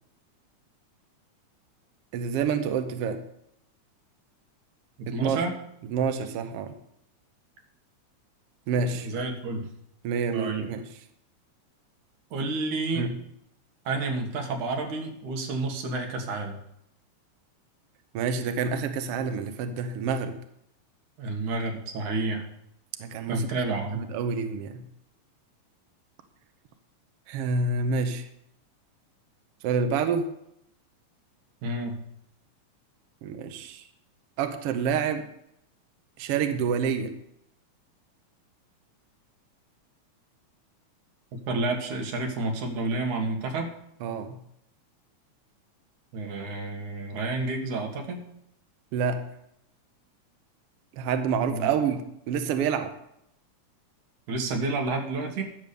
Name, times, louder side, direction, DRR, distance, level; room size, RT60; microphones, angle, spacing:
voice 1, 2.1-3.2 5.1-5.4 5.9-6.7 8.7-9.1 10.0-10.9 13.0-13.2 18.1-20.4 23.0-23.5 23.9-24.9 27.3-28.3 29.6-30.3 33.2-33.8 34.4-35.2 36.2-37.1 44.0-44.4 48.9-49.2 50.9-52.9, right 5 dB, 65° right, 7 dB, 1.7 m, -28 dB
voice 2, 5.0-5.5 9.0-9.7 10.3-10.6 12.3-13.1 13.9-16.6 21.2-22.4 23.3-24.0 31.6-32.0 41.5-43.7 46.1-48.2 51.3-51.7 54.3-55.4, right 3 dB, 85° right, 3 dB, 3.1 m, -30 dB
11.0 x 7.3 x 6.9 m, 0.76 s
omnidirectional pair, 3.3 m